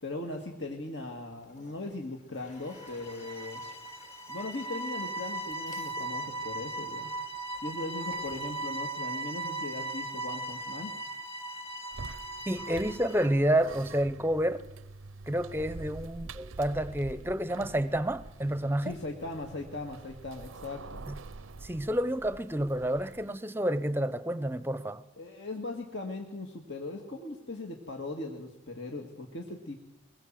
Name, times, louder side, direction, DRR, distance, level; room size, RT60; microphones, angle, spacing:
voice 1, 0.0-3.6 4.3-7.1 7.6-11.0 18.8-21.0 25.2-29.7, left 2 dB, 60° left, 2.1 m, -39 dB
Toilet flush, 1.3-9.5, left 3 dB, 35° left, 2.2 m, -56 dB
sound 1, 2.6-13.4, right 2 dB, 15° left, 1.5 m, -38 dB
sound 2, 11.9-23.4, right 3 dB, 85° right, 0.7 m, -46 dB
voice 2, 12.5-14.6 15.3-19.0 21.1-21.2 21.6-25.0, right 1 dB, 10° right, 0.8 m, -29 dB
23.0 x 21.0 x 7.7 m
head